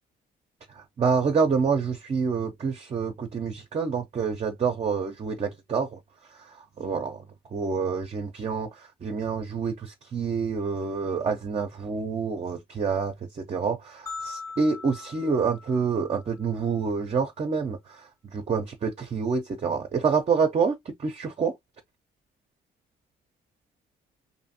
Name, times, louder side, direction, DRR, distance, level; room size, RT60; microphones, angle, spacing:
voice 1, 1.0-5.9 6.8-7.2 7.5-8.7 9.0-17.8 18.3-20.8 21.0-21.5, right 5 dB, 35° right, 0.5 m, -27 dB
sound 1, 14.1-16.4, left 4 dB, 15° left, 0.7 m, -40 dB
2.6 x 2.4 x 2.7 m
cardioid pair, 90°, 20 cm